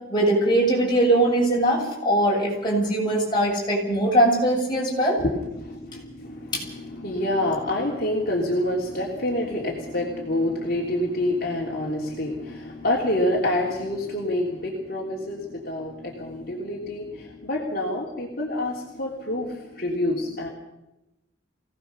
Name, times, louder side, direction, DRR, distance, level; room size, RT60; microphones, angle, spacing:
voice 1, 0.1-5.2 6.5-6.6, right 1 dB, 25° left, -3 dB, 7.9 m, -21 dB
voice 2, 5.2-20.5, left 1 dB, 50° left, -2 dB, 3.4 m, -27 dB
24.5 x 18.0 x 6.9 m, 0.94 s
head